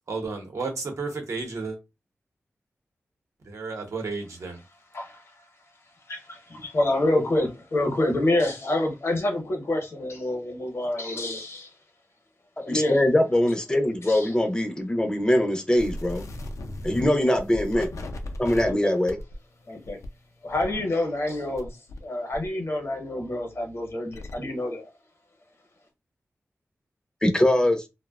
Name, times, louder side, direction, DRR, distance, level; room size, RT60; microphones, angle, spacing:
voice 1, 0.1-1.8 3.4-4.6, right 4 dB, 75° right, 0.7 m, -32 dB
voice 2, 6.1-11.7 12.6-13.0 14.0-14.3 17.3-17.4 18.6-19.0 19.7-20.0 20.4-21.7 22.0-24.9, left 1 dB, 60° left, 0.7 m, -27 dB
voice 3, 12.7-16.3 16.8-17.9 18.4-19.2 27.2-27.8, left 1 dB, 15° left, 0.4 m, -22 dB
sound 1, 15.8-22.0 22.3-24.4, left 1 dB, 90° left, 0.4 m, -39 dB
2.6 x 2.1 x 2.2 m
wide cardioid pair, 130°, 5 cm